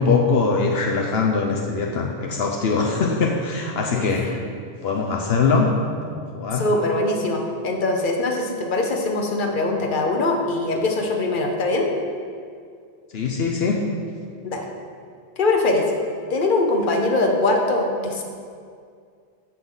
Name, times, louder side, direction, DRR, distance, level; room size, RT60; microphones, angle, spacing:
voice 1, 0.0-4.3 4.8-5.7 6.1-6.7 13.1-13.9, left 4 dB, 75° left, 0 dB, 1.0 m, -22 dB
voice 2, 3.9-4.4 6.5-11.9 14.4-14.7 15.4-15.8 16.3-18.2, left 2 dB, 55° left, 2 dB, 1.1 m, -22 dB
14.5 x 5.9 x 3.9 m, 2.2 s
omnidirectional pair, 1.1 m